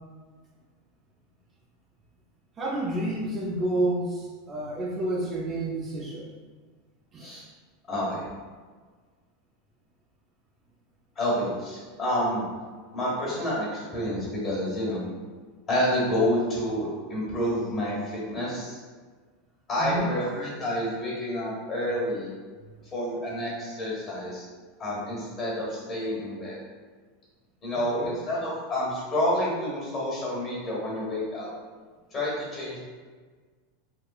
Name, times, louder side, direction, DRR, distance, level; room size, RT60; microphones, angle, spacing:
voice 1, 2.6-6.3 7.1-7.4 19.8-20.1 27.7-28.1, right 1 dB, 30° right, -4 dB, 0.5 m, -30 dB
voice 2, 7.9-8.2 11.1-12.5 12.9-15.1 15.7-18.8 19.7-22.3 22.9-24.4 24.8-26.6 27.6-31.5 32.1-32.8, left 1 dB, 30° left, -5 dB, 1.4 m, -29 dB
3.6 x 2.3 x 2.4 m, 1.5 s
supercardioid pair, 115°, 0 cm